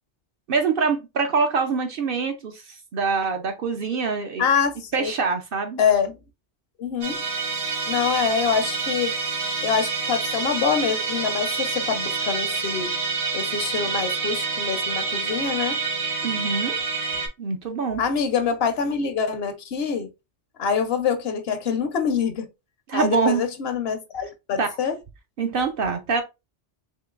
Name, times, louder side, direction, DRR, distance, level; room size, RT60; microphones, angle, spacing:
voice 1, 0.5-4.5 4.9-5.8 16.2-16.8 17.4-18.0 22.9-23.4 24.6-24.7 25.4-26.2, right 5 dB, 60° right, 0.7 m, -24 dB
voice 2, 4.4-5.1 5.8-6.1 6.8-7.2 7.9-9.1 9.6-12.9 13.3-15.8 18.0-20.1 20.6-22.5 22.9-24.9, left 6 dB, 65° left, 0.8 m, -25 dB
Musical instrument, 7.0-17.3, right 4 dB, 90° right, 1.4 m, -27 dB
3.7 x 3.3 x 2.3 m
omnidirectional pair, 1.2 m